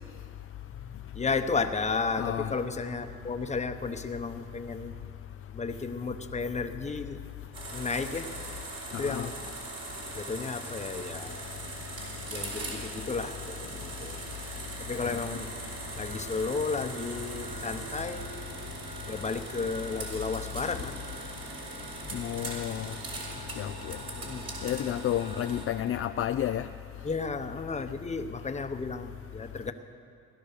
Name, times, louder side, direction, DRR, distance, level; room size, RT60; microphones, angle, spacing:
voice 1, 0.7-5.0 5.5-7.2 7.7-8.3 8.9-9.4 10.1-11.5 12.3-14.2 14.8-15.5 16.0-18.2 19.1-21.0 21.5-22.7 24.1-24.5 27.0-29.7, left 4 dB, 25° left, 8 dB, 0.9 m, -33 dB
voice 2, 2.2-2.5 8.9-9.3 22.1-22.9 23.6-24.0 24.6-26.7, left 11 dB, 50° left, 8 dB, 0.5 m, -31 dB
sound 1, 7.5-25.7, right 2 dB, 55° right, 4.3 m, -41 dB
sound 2, 11.6-25.6, right 3 dB, 80° right, 1.8 m, -49 dB
17.0 x 12.0 x 6.6 m, 2.4 s
cardioid pair, 90°, 30 cm